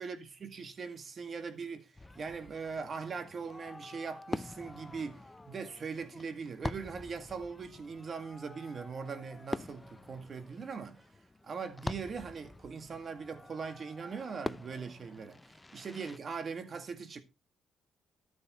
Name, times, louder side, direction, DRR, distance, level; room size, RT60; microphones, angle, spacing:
voice 1, 0.0-11.0 11.4-17.2, right 5 dB, 45° right, 1.9 m, -41 dB
Fireworks, 1.9-16.2, left 2 dB, 15° left, 0.5 m, -45 dB
14.0 x 7.6 x 3.1 m
cardioid pair, 90°, 0 cm